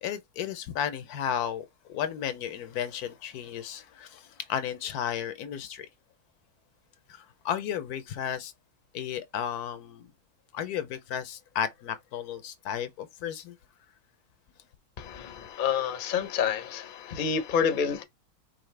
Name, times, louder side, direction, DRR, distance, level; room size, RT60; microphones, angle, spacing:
voice 1, 0.0-5.9 7.1-8.5 8.9-10.1 10.5-13.6, left 9 dB, 80° left, 1.1 m, -33 dB
voice 2, 15.0-18.0, left 7 dB, 45° left, 0.7 m, -28 dB
5.6 x 2.6 x 3.2 m
omnidirectional pair, 1.6 m